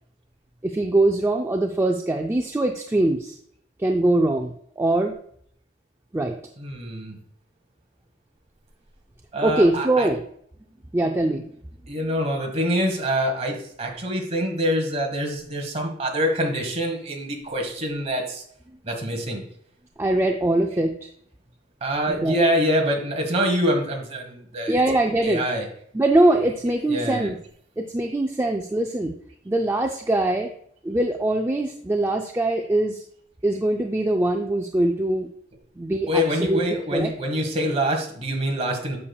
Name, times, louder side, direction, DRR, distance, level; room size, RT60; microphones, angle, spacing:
voice 1, 0.6-3.4 3.8-5.1 6.1-6.4 9.4-10.2 10.9-11.5 20.0-21.1 22.1-22.4 24.7-25.4 25.9-27.4 27.8-29.1 29.5-30.5 30.8-33.0 33.4-35.3 35.8-36.6 36.9-37.1, right 1 dB, 15° right, 3 dB, 0.4 m, -22 dB
voice 2, 6.6-7.2 9.3-10.1 11.9-18.4 18.8-19.4 21.8-24.8 25.2-25.7 26.8-27.3 36.1-39.0, equal, 35° right, 2 dB, 1.3 m, -25 dB
8.5 x 6.8 x 2.3 m, 0.66 s
head